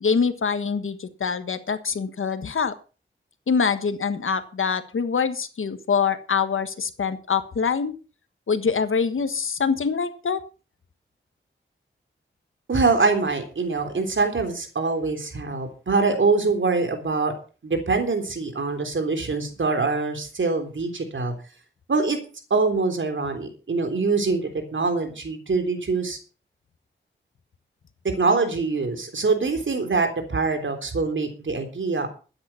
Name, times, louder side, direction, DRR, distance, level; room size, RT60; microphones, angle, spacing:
voice 1, 0.0-2.7 3.5-7.9 8.5-10.4, left 6 dB, 85° left, 11 dB, 1.4 m, -24 dB
voice 2, 12.7-17.3 17.6-21.3 21.9-22.2 22.5-26.2 28.0-32.1, right 4 dB, 70° right, 6 dB, 3.6 m, -24 dB
13.0 x 9.6 x 5.7 m, 0.36 s
wide cardioid pair, 60°, 21 cm